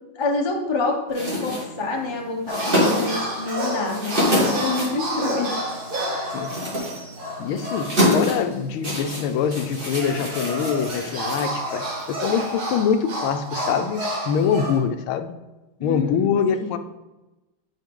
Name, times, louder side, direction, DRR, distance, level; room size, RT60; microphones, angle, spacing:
voice 1, 0.1-5.5 15.8-16.8, left 3 dB, 25° left, 1 dB, 0.5 m, -27 dB
sound 1, 1.1-12.0, equal, 25° right, 1.9 m, -27 dB
sound 2, 2.5-8.2 8.5-8.6 9.5-14.8, right 1 dB, 50° right, 1.9 m, -30 dB
voice 2, 7.4-14.0 14.3-15.3 15.8-16.8, left 7 dB, 90° left, 9 dB, 1.5 m, -24 dB
9.0 x 5.0 x 3.7 m, 1.0 s
omnidirectional pair, 2.2 m